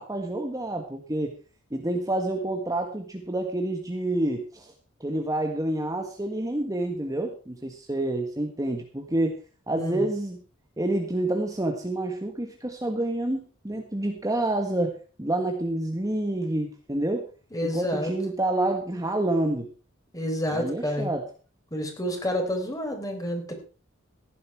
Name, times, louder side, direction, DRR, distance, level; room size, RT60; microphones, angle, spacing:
voice 1, 0.0-1.4 1.7-4.7 5.0-9.4 9.7-10.4 10.8-17.3 17.6-19.7 20.5-21.3, right 1 dB, 15° right, 4 dB, 1.5 m, -28 dB
voice 2, 17.5-18.1 20.1-21.1 21.7-23.5, equal, 15° left, 4 dB, 4.1 m, -29 dB
16.5 x 11.0 x 4.6 m, 0.36 s
head